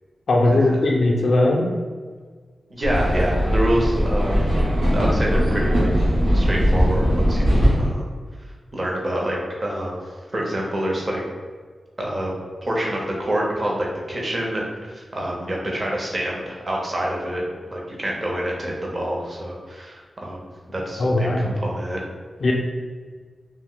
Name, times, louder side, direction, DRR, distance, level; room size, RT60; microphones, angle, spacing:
voice 1, 0.3-1.7 21.0-21.5 22.4-22.5, left 2 dB, 60° left, -1 dB, 0.3 m, -19 dB
voice 2, 2.7-4.4 4.9-5.9 6.3-8.0 8.7-10.0 10.3-11.2 12.0-12.3 12.6-22.0, right 1 dB, 30° right, -2 dB, 0.5 m, -27 dB
sound 1, 2.8-7.9, equal, 75° right, 0.8 m, -19 dB
2.5 x 2.0 x 3.7 m, 1.5 s
wide cardioid pair, 160°, 0 cm